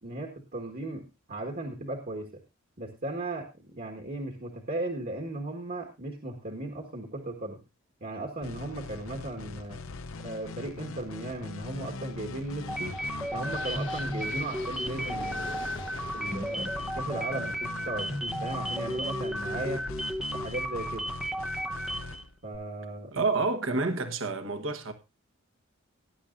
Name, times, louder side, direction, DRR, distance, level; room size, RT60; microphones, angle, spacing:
voice 1, 0.0-2.4 2.8-7.6 8.0-9.8 10.2-13.0 13.3-15.6 16.1-19.9 20.3-21.1 22.4-23.1, right 2 dB, 45° right, 1.6 m, -36 dB
sound 1, 8.4-22.6, left 3 dB, 85° left, 0.8 m, -42 dB
sound 2, 12.0-19.8, left 4 dB, 60° left, 1.4 m, -47 dB
sound 3, 12.7-22.2, equal, 5° right, 0.7 m, -34 dB
voice 2, 23.1-24.9, right 3 dB, 70° right, 1.4 m, -28 dB
18.5 x 10.5 x 2.5 m
head